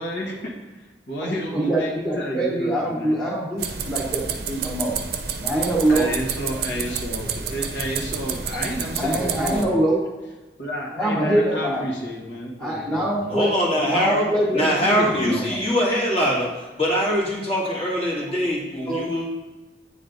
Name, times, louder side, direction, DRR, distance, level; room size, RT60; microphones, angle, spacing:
voice 1, 0.0-3.2 5.9-9.7 10.6-13.3 13.7-15.5, equal, 80° left, -2 dB, 1.4 m, -31 dB
voice 2, 1.5-5.0 5.4-6.1 8.5-8.6 9.0-10.0 10.9-11.8 12.6-13.5 13.8-15.6 17.7-17.8 18.3-18.4 18.8-19.1, right 1 dB, 5° left, -7 dB, 1.1 m, -24 dB
sound 1, 3.6-9.6, right 6 dB, 55° right, 0.5 m, -29 dB
voice 3, 13.3-14.2 14.5-16.5 16.8-19.3, equal, 30° left, -4 dB, 1.7 m, -22 dB
9.1 x 3.3 x 4.0 m, 1.1 s
head